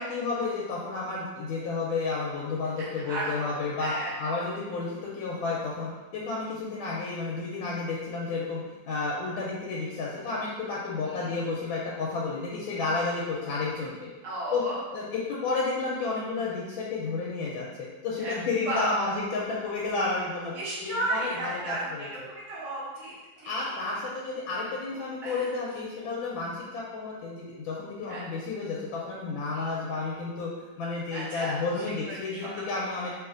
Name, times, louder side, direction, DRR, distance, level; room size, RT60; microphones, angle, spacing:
voice 1, 0.0-3.9 4.2-8.6 8.9-13.9 14.5-14.6 14.9-17.6 18.0-20.5 20.8-22.1 23.4-30.5 30.8-33.1, left 3 dB, 90° left, -4 dB, 1.4 m, -31 dB
voice 2, 2.8-4.1 11.0-11.4 14.2-14.8 18.2-18.4 18.6-19.0 20.5-23.7 25.2-25.5 28.1-28.2 29.5-29.7 31.1-33.1, right 1 dB, 40° right, -8 dB, 1.0 m, -34 dB
3.1 x 3.0 x 2.4 m, 1.2 s
omnidirectional pair, 2.1 m